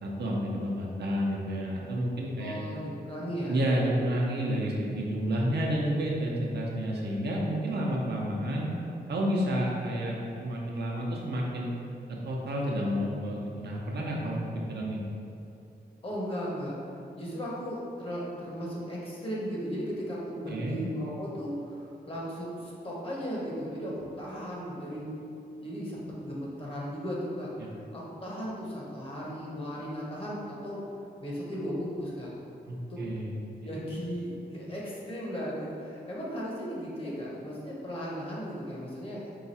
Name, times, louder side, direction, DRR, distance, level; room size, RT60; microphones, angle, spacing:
voice 1, 0.0-2.6 3.2-8.7 9.1-11.7 12.2-14.4 14.7-15.0 20.5-20.8 27.6-27.7 32.7-33.4 33.8-33.9, equal, 80° right, -2 dB, 0.7 m, -30 dB
voice 2, 2.4-3.6 16.0-25.2 25.6-30.8 31.2-32.3 32.9-33.0 33.6-39.2, equal, 35° left, -6 dB, 0.9 m, -36 dB
4.8 x 2.3 x 4.1 m, 2.7 s
wide cardioid pair, 150°, 17 cm